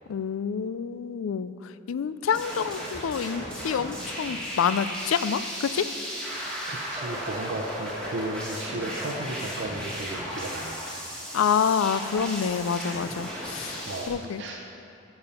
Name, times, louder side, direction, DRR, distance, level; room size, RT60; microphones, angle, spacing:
voice 1, 0.1-5.9 11.3-13.8 14.1-14.4, left 7 dB, 80° left, 14 dB, 0.4 m, -27 dB
sound 1, 2.3-14.1, equal, 5° left, 2.0 m, -35 dB
voice 2, 6.7-11.0 13.8-14.6, right 2 dB, 60° right, 0 dB, 0.6 m, -35 dB
12.0 x 7.0 x 5.6 m, 2.7 s
head